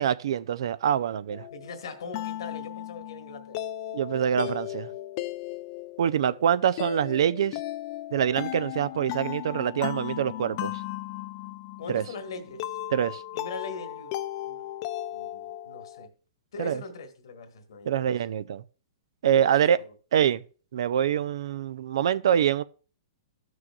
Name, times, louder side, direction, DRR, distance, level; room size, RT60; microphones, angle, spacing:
voice 1, 0.0-1.5 3.9-4.9 6.0-7.6 8.1-10.8 11.9-12.1 12.9-13.2 16.6-16.8 17.9-18.6 19.2-19.8 20.1-20.4 20.7-22.6, right 9 dB, 70° right, 0.4 m, -25 dB
sound 1, 1.3-16.1, left 13 dB, 45° left, 0.4 m, -36 dB
voice 2, 1.5-3.7 11.8-12.6 13.3-14.1 14.4-14.7 15.1-16.1 16.5-18.1 19.2-19.5 19.8-19.9, left 4 dB, 75° left, 1.5 m, -40 dB
14.0 x 6.2 x 2.4 m
hypercardioid pair, 130°, 3 cm